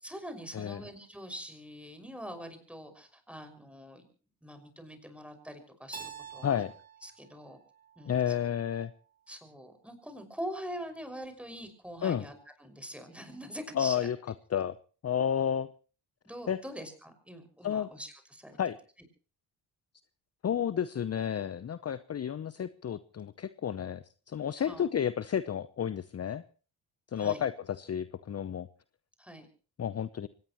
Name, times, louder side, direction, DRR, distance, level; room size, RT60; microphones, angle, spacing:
voice 1, 0.0-4.1 4.4-6.5 7.0-7.6 8.0-8.3 9.3-12.3 12.6-14.1 16.2-18.6 24.5-24.9 27.2-27.4 29.2-29.5, equal, 5° right, 7 dB, 5.8 m, -43 dB
Keyboard (musical), 5.9-8.7, right 6 dB, 20° right, 3.1 m, -48 dB
voice 2, 8.1-8.9 12.0-12.2 13.8-14.2 14.5-14.7 15.0-15.7 16.5-16.6 17.6-17.9 18.6-18.8 20.4-26.4 27.1-28.7 29.8-30.3, left 9 dB, 35° left, 15 dB, 0.8 m, -31 dB
24.5 x 18.5 x 3.1 m, 0.38 s
supercardioid pair, 60°, 44 cm